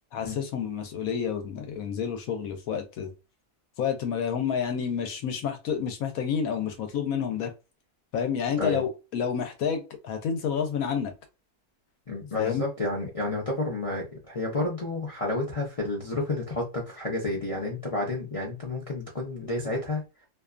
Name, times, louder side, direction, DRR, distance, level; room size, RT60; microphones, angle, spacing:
voice 1, 0.1-3.1 3.8-7.5 8.1-11.1 12.3-12.7, left 7 dB, 70° left, 1.0 m, -29 dB
voice 2, 12.1-20.0, left 2 dB, 50° left, 0.4 m, -30 dB
2.6 x 2.3 x 2.4 m
omnidirectional pair, 1.6 m